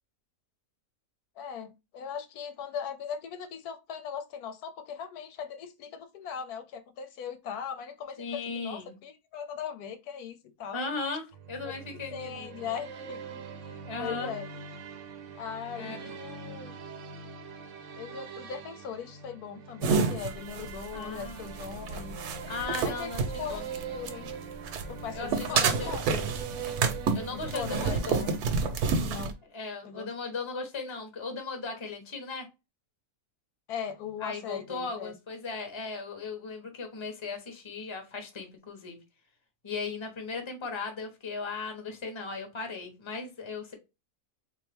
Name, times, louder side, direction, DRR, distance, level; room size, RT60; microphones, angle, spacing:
voice 1, 1.4-10.8 11.6-14.5 15.3-16.7 17.9-22.2 22.8-23.1 23.4-24.3 24.9-26.3 27.3-28.3 29.0-29.4 29.8-30.1 33.7-35.1, left 7 dB, 90° left, 1.2 m, -39 dB
voice 2, 8.2-9.0 10.7-12.5 13.9-14.3 15.8-16.1 20.9-21.6 22.5-23.6 25.1-25.9 26.2-26.3 27.1-28.3 29.5-32.5 34.2-39.0 39.6-43.7, left 4 dB, 25° left, 0.8 m, -37 dB
sound 1, 11.3-29.0, right 6 dB, 65° right, 0.8 m, -43 dB
sound 2, 19.8-24.3 24.6-29.3, right 5 dB, 85° right, 1.2 m, -29 dB
3.6 x 2.7 x 3.3 m
omnidirectional pair, 1.6 m